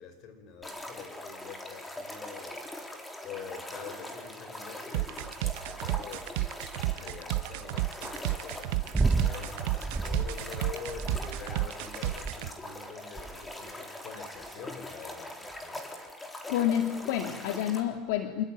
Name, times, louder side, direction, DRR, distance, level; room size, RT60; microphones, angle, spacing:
voice 1, 0.0-15.9, left 7 dB, 50° left, 8 dB, 5.6 m, -46 dB
sound 1, 0.6-17.8, left 1 dB, 10° left, 3.9 m, -42 dB
sound 2, 4.9-12.5, right 18 dB, 70° right, 0.8 m, -32 dB
sound 3, 8.9-9.4 9.8-10.4 10.9-11.6 12.0-12.5 13.2-13.5 14.2-14.6 15.5-15.6, right 4 dB, 15° right, 1.0 m, -30 dB
voice 2, 16.5-18.4, left 10 dB, 70° left, 6 dB, 2.3 m, -29 dB
27.5 x 20.5 x 9.3 m, 1.1 s
supercardioid pair, 140°, 0 cm